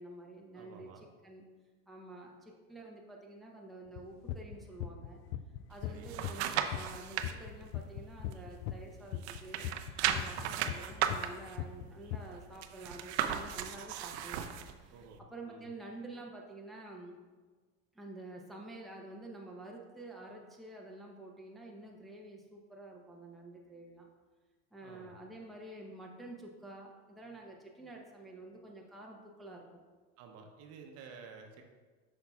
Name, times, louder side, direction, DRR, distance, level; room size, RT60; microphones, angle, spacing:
voice 1, 0.0-1.5 1.9-5.2 5.7-9.7 10.1-17.2 17.9-24.1 24.7-29.8, right 2 dB, ahead, -2 dB, 0.8 m, -49 dB
voice 2, 0.5-1.1 5.9-6.1 14.9-15.2 15.4-15.7 24.8-25.1 30.2-31.6, right 5 dB, 50° right, 3 dB, 0.9 m, -52 dB
sound 1, 4.0-6.5 6.7-8.7 9.1-11.3 11.6-12.2, left 12 dB, 50° left, 0.4 m, -38 dB
sound 2, 5.7-7.3 7.8-8.9 9.2-14.7 15.2-15.3, right 10 dB, 75° right, 0.6 m, -36 dB
8.0 x 5.6 x 2.3 m, 1.4 s
supercardioid pair, 105°, 33 cm